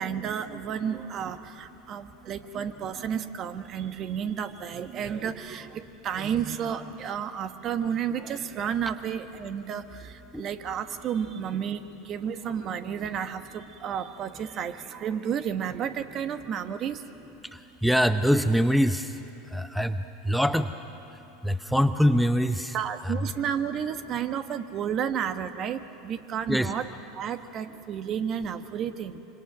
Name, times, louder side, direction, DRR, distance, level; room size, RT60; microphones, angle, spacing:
voice 1, 0.0-17.0 22.7-26.9 27.1-29.2, right 8 dB, 40° right, 10 dB, 1.3 m, -32 dB
voice 2, 17.8-19.0 19.5-20.0 20.3-20.7 21.4-22.7 23.0-23.1 26.5-26.7, equal, ahead, 10 dB, 0.8 m, -23 dB
25.5 x 25.0 x 6.2 m, 2.9 s
hypercardioid pair, 85°, 0 cm